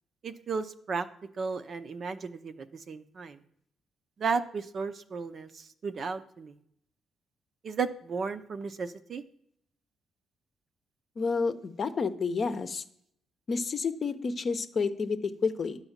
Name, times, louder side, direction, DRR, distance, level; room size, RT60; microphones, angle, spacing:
voice 1, 0.2-1.1 1.4-3.4 4.2-6.6 7.6-9.2, right 5 dB, 50° right, 8 dB, 0.7 m, -34 dB
voice 2, 11.2-12.8 13.5-15.8, left 4 dB, 45° left, 9 dB, 0.7 m, -30 dB
10.5 x 4.0 x 7.3 m, 0.71 s
cardioid pair, 90°, 0 cm